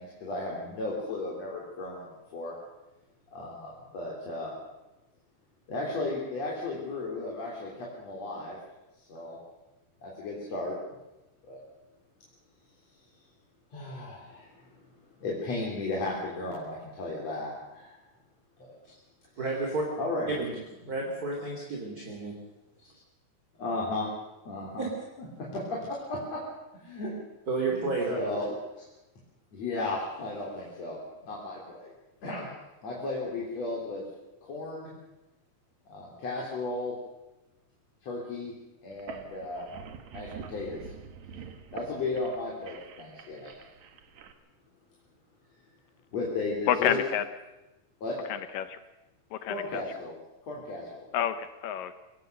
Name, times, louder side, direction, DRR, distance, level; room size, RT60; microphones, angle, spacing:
voice 1, 0.0-2.5 3.3-4.5 5.7-8.6 9.1-9.4 10.0-10.8 11.4-11.6 13.7-14.9 15.2-18.0 18.6-18.7 20.0-20.3 23.6-24.1 24.5-24.9 25.4-25.8 26.1-26.4 26.7-27.1 27.7-28.9 29.5-31.0 31.2-31.9 32.2-32.5 32.8-34.0 34.4-34.9 35.9-36.9 38.0-38.5 38.8-39.7 40.1-40.9 41.7-43.5 46.1-47.0 48.0-48.2 49.5-50.1 50.4-51.1, left 2 dB, 40° left, -3 dB, 4.2 m, -35 dB
voice 2, 19.4-19.8 20.3-20.6 20.8-22.4 22.8-22.9 24.8-24.9 27.5-28.2, right 3 dB, 25° right, -1 dB, 2.7 m, -31 dB
sound 1, 38.9-44.3, right 6 dB, 60° right, 2.2 m, -46 dB
voice 3, 46.7-47.2 48.3-48.8 49.3-49.8 51.1-52.0, left 9 dB, 75° left, 11 dB, 2.2 m, -29 dB
24.0 x 18.0 x 6.6 m, 1.0 s
omnidirectional pair, 4.7 m